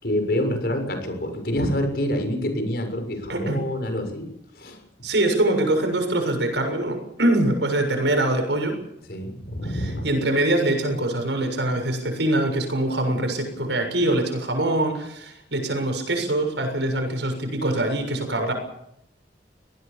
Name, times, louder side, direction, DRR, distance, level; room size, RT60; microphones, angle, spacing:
voice 1, 0.0-4.3 4.5-4.8 9.1-10.1, left 1 dB, 55° left, 5 dB, 6.8 m, -27 dB
voice 2, 3.3-3.7 5.0-8.8 10.0-18.5, right 1 dB, 85° right, 5 dB, 7.0 m, -23 dB
25.0 x 19.0 x 7.0 m, 0.78 s
head